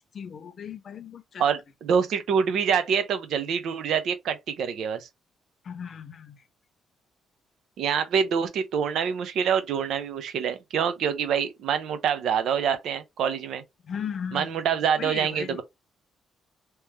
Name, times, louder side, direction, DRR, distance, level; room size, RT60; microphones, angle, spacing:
voice 1, 0.1-1.5 5.6-6.4 13.8-14.5 15.0-15.6, left 7 dB, 55° left, 0.7 m, -36 dB
voice 2, 1.4-5.1 7.8-13.6 14.3-15.6, right 7 dB, 75° right, 0.8 m, -26 dB
3.2 x 2.9 x 3.3 m
cardioid pair, 90°, 0 cm